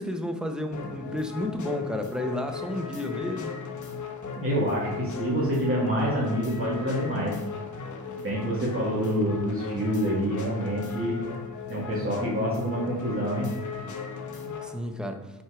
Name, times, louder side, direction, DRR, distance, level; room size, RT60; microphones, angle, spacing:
voice 1, 0.0-3.5 14.6-15.2, left 1 dB, ahead, 5 dB, 0.8 m, -31 dB
sound 1, 0.7-14.7, left 5 dB, 55° left, 1.1 m, -37 dB
voice 2, 4.4-7.4 8.2-11.2 11.7-13.5, equal, 35° right, -6 dB, 2.1 m, -27 dB
6.5 x 4.4 x 4.9 m, 1.1 s
cardioid pair, 105°, 36 cm